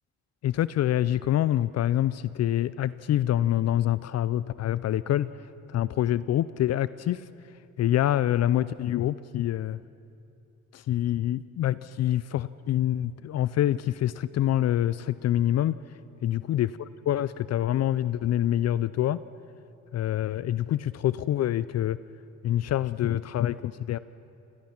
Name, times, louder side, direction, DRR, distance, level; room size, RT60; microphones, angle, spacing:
voice 1, 0.4-5.4 5.7-7.2 7.8-9.8 10.7-15.7 16.2-19.2 19.9-22.0 22.4-24.0, left 12 dB, 60° left, 17 dB, 0.5 m, -26 dB
26.5 x 18.0 x 5.9 m, 2.6 s
cardioid pair, 90°, 30 cm